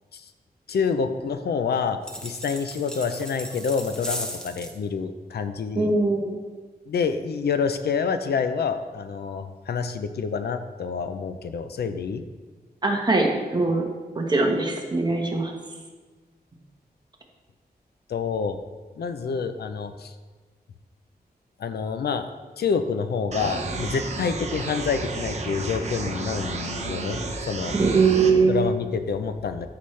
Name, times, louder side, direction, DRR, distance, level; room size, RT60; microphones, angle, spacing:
voice 1, 0.7-5.9 6.9-12.2 18.1-18.6 19.0-20.1 21.6-22.3 22.6-27.2 27.5-27.8 28.5-29.7, left 5 dB, 75° left, 9 dB, 0.6 m, -27 dB
sound 1, 2.0-4.8, equal, 5° left, 0.8 m, -36 dB
voice 2, 5.8-6.4 12.8-13.8 14.1-15.5 27.8-28.5, right 3 dB, 25° right, 1 dB, 1.2 m, -21 dB
sound 2, 23.3-28.3, right 3 dB, 40° right, 1.0 m, -31 dB
14.0 x 5.8 x 3.2 m, 1.4 s
wide cardioid pair, 175°, 17 cm